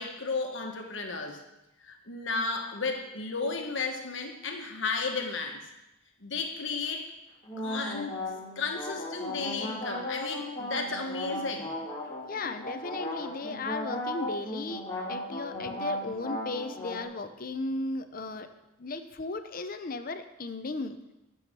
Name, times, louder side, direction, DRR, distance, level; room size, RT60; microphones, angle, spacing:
voice 1, 0.0-1.4 1.8-5.6 6.2-7.1 7.6-8.2 8.5-11.7, left 4 dB, 65° left, 3 dB, 1.5 m, -33 dB
sound 1, 7.4-17.0, left 1 dB, 20° left, 2.4 m, -36 dB
voice 2, 12.3-18.5 18.8-21.0, left 3 dB, 45° left, 9 dB, 0.6 m, -36 dB
11.0 x 7.1 x 6.0 m, 0.95 s
head